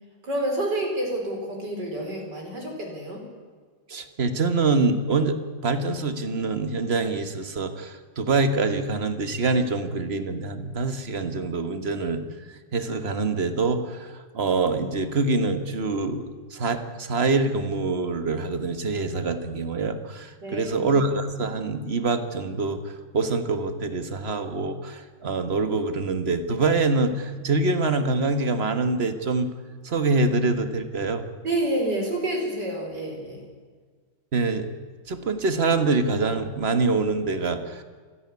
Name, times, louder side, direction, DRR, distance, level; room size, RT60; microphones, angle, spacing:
voice 1, 0.2-3.2 20.4-20.9 31.4-33.4, right 1 dB, 50° right, 1 dB, 5.1 m, -28 dB
voice 2, 3.9-12.2 12.7-14.1 14.3-22.8 23.1-29.5 29.8-31.3 34.3-34.7 35.1-37.8, right 3 dB, 30° right, 9 dB, 1.4 m, -25 dB
27.5 x 11.0 x 9.6 m, 1.6 s
omnidirectional pair, 2.4 m